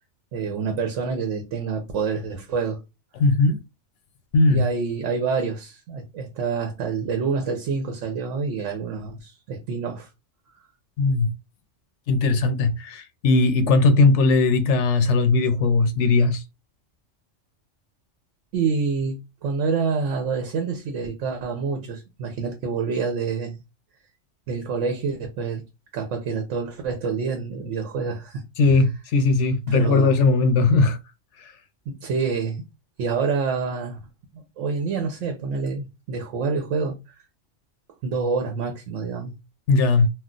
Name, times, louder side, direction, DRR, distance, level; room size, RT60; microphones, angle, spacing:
voice 1, 0.3-2.8 4.5-10.1 18.5-23.6 24.5-25.6 25.9-28.4 29.7-30.1 31.9-32.6 33.0-34.0 34.3-37.2 38.0-39.3, right 5 dB, 80° right, 1.0 m, -27 dB
voice 2, 3.2-3.6 4.3-4.6 11.0-11.3 12.1-16.4 28.6-31.0 31.4-31.5 39.7-40.1, left 3 dB, 75° left, 0.9 m, -19 dB
2.4 x 2.3 x 3.7 m
omnidirectional pair, 1.3 m